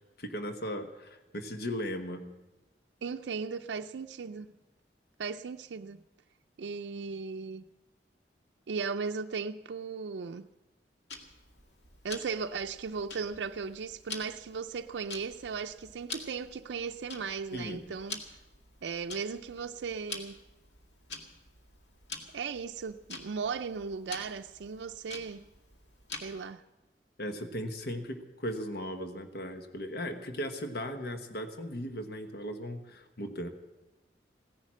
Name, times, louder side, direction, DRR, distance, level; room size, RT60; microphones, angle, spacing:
voice 1, 0.0-2.3 17.5-17.8 27.2-33.5, equal, 60° left, 1.2 m, -37 dB
voice 2, 3.0-4.5 5.2-6.0 6.6-7.6 8.7-10.5 12.0-18.2 18.8-20.4 22.3-25.5 26.2-26.6, right 5 dB, 90° right, 0.4 m, -37 dB
Tick-tock, 11.1-26.5, left 3 dB, 90° left, 2.1 m, -47 dB
16.5 x 10.5 x 7.3 m
head